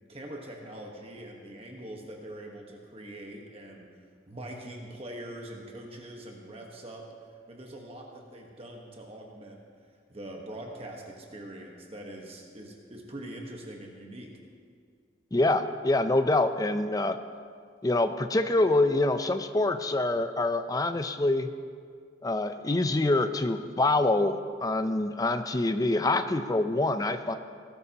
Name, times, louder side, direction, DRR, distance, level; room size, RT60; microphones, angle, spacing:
voice 1, 0.1-3.9 4.3-7.0 7.5-9.6 10.1-14.3, right 1 dB, 30° right, 0 dB, 1.3 m, -43 dB
voice 2, 15.3-17.2 17.8-21.5 22.2-27.4, left 2 dB, 20° left, 9 dB, 0.5 m, -25 dB
19.0 x 12.0 x 2.9 m, 2.1 s
head